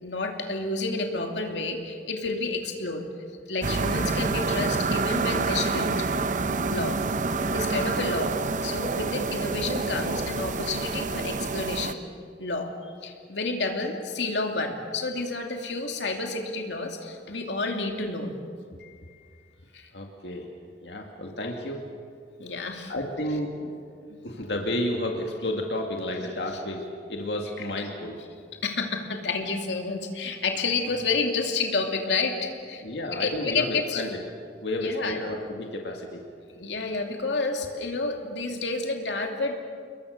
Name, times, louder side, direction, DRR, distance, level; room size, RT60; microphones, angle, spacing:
voice 1, 0.0-3.0 3.5-5.9 6.7-7.0 7.5-12.0 12.4-12.7 13.0-18.4 18.8-19.2 19.7-19.9 22.4-22.9 24.1-24.4 27.6-27.7 28.6-32.8 33.1-34.0 34.8-35.2 36.5-39.6, left 3 dB, 90° left, 3 dB, 2.7 m, -30 dB
sound 1, 3.6-11.9, right 3 dB, 45° right, 0.8 m, -27 dB
voice 2, 19.9-20.5 20.8-21.8 22.9-23.7 24.2-28.2 32.8-34.2 34.6-36.2, left 1 dB, 70° left, 1 dB, 2.3 m, -31 dB
29.5 x 21.5 x 6.7 m, 2.1 s
head